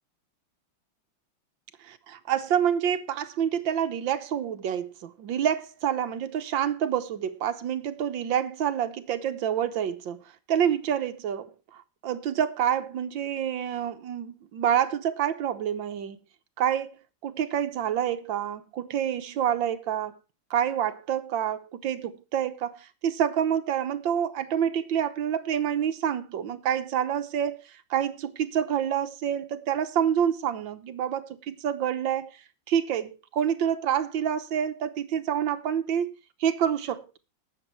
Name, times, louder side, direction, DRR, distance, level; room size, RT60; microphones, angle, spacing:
voice 1, 1.8-10.2 10.5-11.5 12.0-16.2 16.6-20.2 20.5-32.4 32.7-36.1 36.4-37.2, right 9 dB, 75° right, 1.6 m, -27 dB
18.0 x 6.9 x 4.4 m
omnidirectional pair, 2.2 m